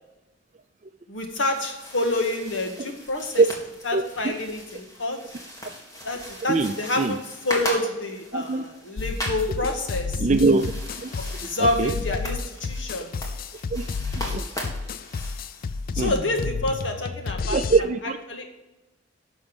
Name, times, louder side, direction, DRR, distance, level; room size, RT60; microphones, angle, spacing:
voice 1, 1.1-3.4 3.9-5.2 6.0-10.2 11.2-13.1 15.9-17.6 18.3-18.5, left 2 dB, 75° left, 3 dB, 1.9 m, -28 dB
sound 1, 1.2-16.0, equal, 20° left, 2.2 m, -39 dB
voice 2, 3.9-4.3 6.5-7.2 8.3-8.6 10.2-10.7 11.0-11.9 13.7-13.8 14.2-14.4 16.0-16.2 17.5-18.2, right 3 dB, 40° right, 9 dB, 0.5 m, -23 dB
sound 2, 9.0-17.8, left 4 dB, 50° left, 0.4 m, -31 dB
11.0 x 6.3 x 5.4 m, 1.0 s
head